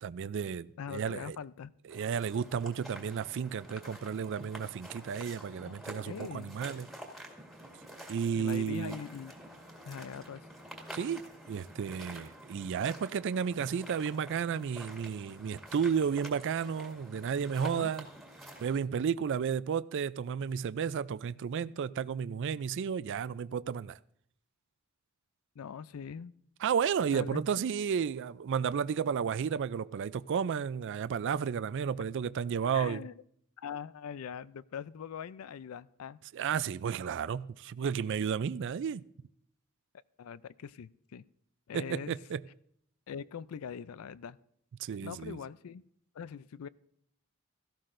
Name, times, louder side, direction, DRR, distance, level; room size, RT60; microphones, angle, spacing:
voice 1, 0.0-1.4 1.9-6.9 8.1-9.0 10.9-18.1 18.6-24.0 26.6-33.0 36.3-39.0 41.7-42.4 44.8-45.4, right 7 dB, 60° right, 0.4 m, -32 dB
voice 2, 0.8-1.7 5.7-5.8 6.0-6.6 8.3-9.3 9.9-10.5 17.7-17.9 25.6-26.3 27.1-27.4 32.7-33.1 33.6-36.2 40.2-41.2 41.7-42.1 43.1-44.4 45.0-45.8 46.1-46.7, left 7 dB, 80° left, 0.4 m, -42 dB
sound 1, 1.9-18.8, equal, ahead, 2.0 m, -49 dB
17.0 x 14.5 x 2.6 m
head